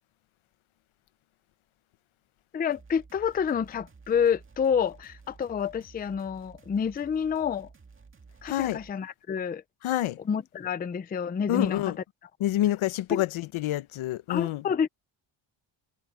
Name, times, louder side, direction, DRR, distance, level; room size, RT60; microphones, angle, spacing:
voice 1, 2.5-7.7 8.4-9.6 10.2-11.9 13.1-13.2 14.3-14.9, left 7 dB, 20° left, 0.4 m, -28 dB
sound 1, 2.7-8.9, right 4 dB, 25° right, 2.1 m, -53 dB
voice 2, 8.5-8.8 9.8-10.2 11.5-12.0 12.4-14.6, left 13 dB, 80° left, 0.9 m, -27 dB
cardioid pair, 160°, 48 cm